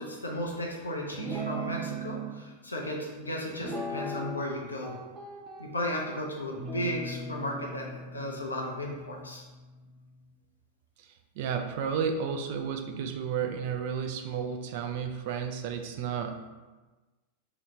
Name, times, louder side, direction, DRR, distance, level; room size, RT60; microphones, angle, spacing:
voice 1, 0.0-4.9 5.6-9.4, left 1 dB, 80° left, -1 dB, 0.7 m, -35 dB
Guitar, 1.1-2.3 3.6-4.5 4.8-6.0 6.6-10.1, right 2 dB, 20° right, 0.7 m, -38 dB
voice 2, 11.4-16.5, right 7 dB, 50° right, 5 dB, 0.4 m, -32 dB
3.2 x 2.9 x 4.0 m, 1.2 s
figure-of-eight pair, 90°, 0 cm